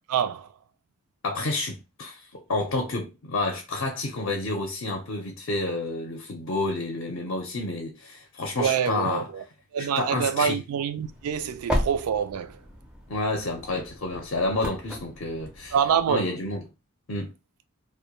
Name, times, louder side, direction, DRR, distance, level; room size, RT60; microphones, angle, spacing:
voice 1, 0.1-0.5 8.6-9.4 9.7-12.6 15.7-16.3, right 7 dB, 80° right, 0.3 m, -26 dB
voice 2, 1.2-9.3 9.8-10.6 13.1-15.8 16.1-16.6 17.1-17.3, left 2 dB, 55° left, 0.5 m, -29 dB
sound 1, 11.0-16.1, equal, 5° right, 0.4 m, -34 dB
2.1 x 2.1 x 2.9 m
head